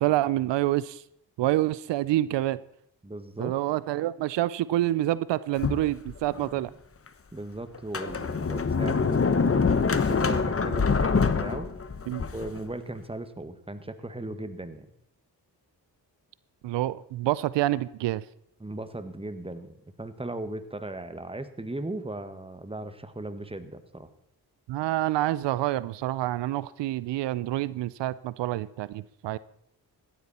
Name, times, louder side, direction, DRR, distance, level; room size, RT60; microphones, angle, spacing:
voice 1, 0.0-1.0 1.4-2.6 3.4-6.7 12.1-12.3 16.6-18.2 24.7-29.4, right 15 dB, 90° right, 18 dB, 0.5 m, -27 dB
voice 2, 3.0-3.6 7.3-11.7 12.3-14.9 18.6-24.1, right 2 dB, 15° right, 10 dB, 1.6 m, -37 dB
Sliding door, 5.6-6.5 7.1-7.2 7.7-12.6, left 5 dB, 30° left, 1.2 m, -25 dB
16.5 x 12.5 x 4.2 m, 0.72 s
cardioid pair, 60°, 42 cm